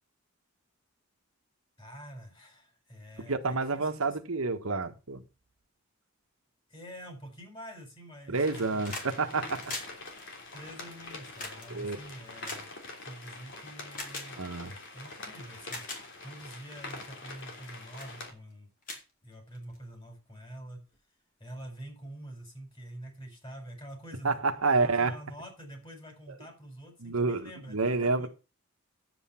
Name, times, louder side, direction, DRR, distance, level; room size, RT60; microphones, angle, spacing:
voice 1, 1.8-4.2 6.7-8.8 10.5-12.7 13.0-14.4 14.9-15.8 16.2-18.7 19.2-20.8 21.4-24.4 24.7-28.3, right 1 dB, 25° left, 5.0 m, -46 dB
voice 2, 3.3-5.2 8.3-9.7 11.7-12.0 14.4-14.7 24.2-25.1 27.0-27.4 27.7-28.3, right 3 dB, 80° right, 1.4 m, -28 dB
sound 1, 8.3-18.3, left 2 dB, 60° left, 3.3 m, -45 dB
sound 2, 8.4-9.1 9.4-13.3 13.9-14.3 15.1-15.2 15.6-16.0 16.6-16.8 17.4-17.7 18.0-18.1 18.5-18.6 18.8-19.8 20.9-21.0, left 2 dB, 40° left, 3.7 m, -41 dB
10.0 x 8.2 x 5.7 m
head